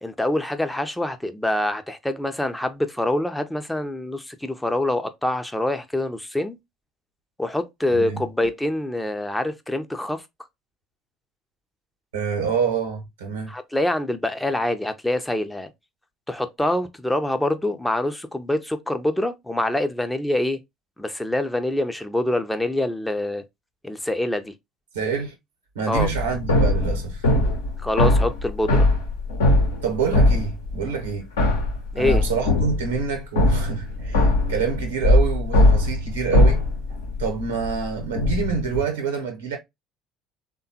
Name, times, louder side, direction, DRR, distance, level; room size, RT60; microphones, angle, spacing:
voice 1, 0.0-6.6 7.4-10.2 13.5-15.7 16.3-20.6 21.0-23.4 23.8-24.5 25.9-26.1 27.8-28.9 31.9-32.2, left 1 dB, 5° left, 0.5 m, -25 dB
voice 2, 7.9-8.2 12.1-13.5 24.9-25.3 25.7-27.3 29.8-31.3 31.9-36.6 37.2-39.6, right 6 dB, 75° right, 0.9 m, -27 dB
sound 1, 26.0-31.1 31.4-38.8, left 1 dB, 70° left, 0.8 m, -21 dB
3.5 x 2.2 x 2.7 m
figure-of-eight pair, 60°, 0 cm